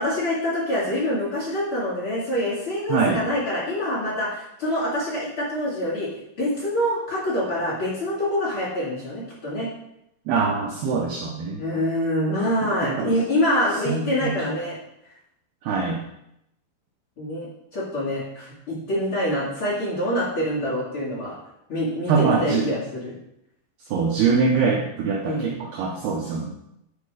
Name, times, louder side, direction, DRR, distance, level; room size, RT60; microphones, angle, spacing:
voice 1, 0.0-6.1 6.4-9.7 11.6-14.8 17.2-17.5 17.7-21.3 21.7-23.1 25.2-25.5, left 1 dB, 35° left, -7 dB, 2.4 m, -25 dB
voice 2, 2.9-3.2 10.3-11.6 12.6-13.1 13.9-14.5 15.6-16.0 22.1-22.8 23.9-26.5, right 5 dB, 85° right, 0 dB, 2.2 m, -23 dB
10.5 x 4.2 x 4.9 m, 0.80 s
omnidirectional pair, 5.4 m